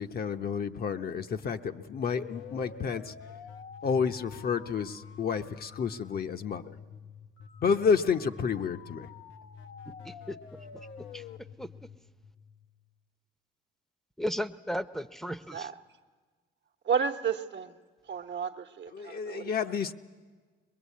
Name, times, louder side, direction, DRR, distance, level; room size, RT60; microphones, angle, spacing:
voice 1, 0.0-3.1 3.8-6.8 7.6-9.1 18.9-19.9, left 6 dB, 50° left, 0.9 m, -30 dB
sound 1, 1.6-13.0, left 6 dB, 85° left, 0.9 m, -48 dB
voice 2, 10.0-10.4 10.7-10.9 11.1-11.2 11.6-11.7 14.2-15.7, equal, ahead, 0.7 m, -35 dB
voice 3, 16.9-17.7 18.1-19.5, right 6 dB, 65° right, 1.0 m, -32 dB
21.5 x 21.5 x 8.4 m
cardioid pair, 90°, 20 cm